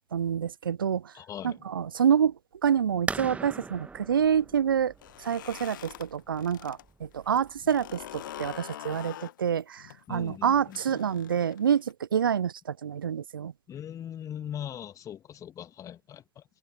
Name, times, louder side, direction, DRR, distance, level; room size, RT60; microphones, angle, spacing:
voice 1, 0.0-1.1 1.4-4.9 5.2-13.5, right 8 dB, 75° right, 0.8 m, -27 dB
voice 2, 1.1-1.6 10.1-10.8 13.7-16.4, left 10 dB, 30° left, 2.0 m, -40 dB
sound 1, 3.1-8.6, right 4 dB, 10° right, 1.2 m, -41 dB
sound 2, 4.9-6.8 7.1-11.9, left 12 dB, 65° left, 1.6 m, -44 dB
figure-of-eight pair, 85°, 12 cm